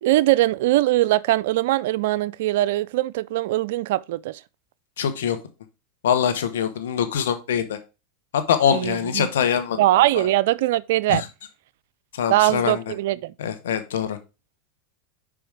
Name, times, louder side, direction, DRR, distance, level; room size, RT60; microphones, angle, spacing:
voice 1, 0.0-4.4 8.7-9.3 9.8-11.2 12.3-13.3, right 16 dB, 70° right, 0.3 m, -21 dB
voice 2, 5.0-5.4 6.0-7.8 8.3-9.8 11.1-11.2 12.2-12.8 13.4-14.2, left 8 dB, 80° left, 1.1 m, -23 dB
5.1 x 4.9 x 4.9 m
hypercardioid pair, 100°, 0 cm